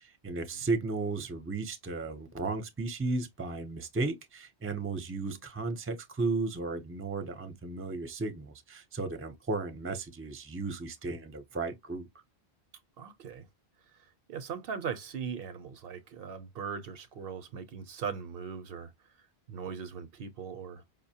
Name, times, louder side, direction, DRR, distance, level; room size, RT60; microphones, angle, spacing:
voice 1, 0.0-12.1, right 3 dB, 15° right, 0.5 m, -34 dB
voice 2, 13.0-13.5 14.0-18.9 19.5-20.8, right 6 dB, 65° right, 0.7 m, -39 dB
5.1 x 2.1 x 2.7 m
omnidirectional pair, 1.1 m